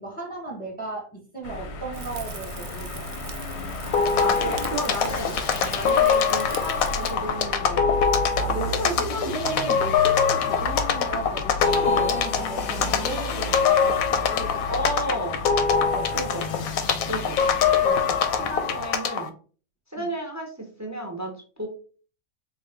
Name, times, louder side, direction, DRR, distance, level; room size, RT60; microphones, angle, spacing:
voice 1, 0.0-3.3 5.6-5.8 8.4-14.6 15.7-16.1 17.8-18.3 20.0-20.1, right 2 dB, 5° left, -1 dB, 0.9 m, -35 dB
sound 1, 1.4-18.9, left 2 dB, 60° left, 0.8 m, -34 dB
Rain / Fire, 1.9-7.1, right 6 dB, 65° right, 0.8 m, -40 dB
sound 2, 3.9-19.3, left 6 dB, 85° left, 1.0 m, -24 dB
voice 2, 4.2-5.4 5.7-7.9 8.6-9.4 14.7-15.4 16.1-16.7 17.0-17.6 18.5-19.3 19.9-21.7, equal, 30° right, 1 dB, 0.3 m, -32 dB
4.1 x 2.3 x 3.4 m, 0.39 s
omnidirectional pair, 1.4 m